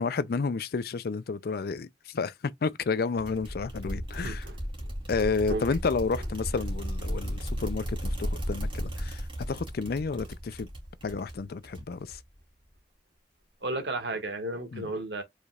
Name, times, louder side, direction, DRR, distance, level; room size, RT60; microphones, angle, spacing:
voice 1, 0.0-4.4 5.1-10.7 11.0-12.2 14.7-14.9, left 4 dB, 60° left, 0.4 m, -31 dB
sound 1, 3.2-12.4, equal, 30° right, 2.2 m, -35 dB
voice 2, 4.1-4.6 5.5-5.6 13.6-15.2, right 2 dB, 70° right, 1.7 m, -33 dB
4.9 x 4.1 x 2.4 m
head